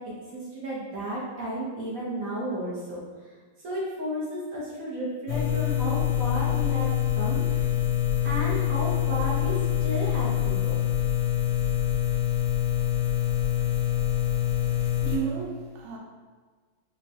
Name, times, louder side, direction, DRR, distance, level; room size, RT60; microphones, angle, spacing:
voice 1, 0.0-3.0 3.6-7.7 8.2-10.9, equal, 60° right, -7 dB, 0.9 m, -33 dB
sound 1, 5.3-15.2, left 11 dB, 70° left, 0.9 m, -25 dB
voice 2, 15.0-16.0, right 6 dB, 80° right, -4 dB, 1.5 m, -32 dB
5.4 x 2.2 x 2.7 m, 1.4 s
omnidirectional pair, 2.2 m